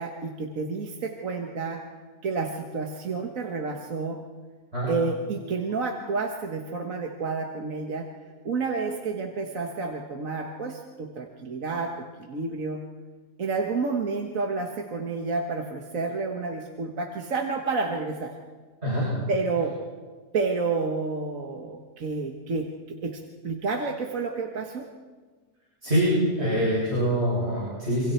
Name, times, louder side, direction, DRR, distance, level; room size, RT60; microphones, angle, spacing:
voice 1, 0.0-1.8 2.2-4.2 4.9-8.1 8.4-12.8 13.4-18.3 19.3-19.8 20.3-24.9, right 4 dB, 65° right, 2 dB, 1.8 m, -30 dB
voice 2, 25.8-28.1, equal, 45° right, -7 dB, 7.8 m, -24 dB
27.0 x 26.0 x 4.5 m, 1.4 s
omnidirectional pair, 1.5 m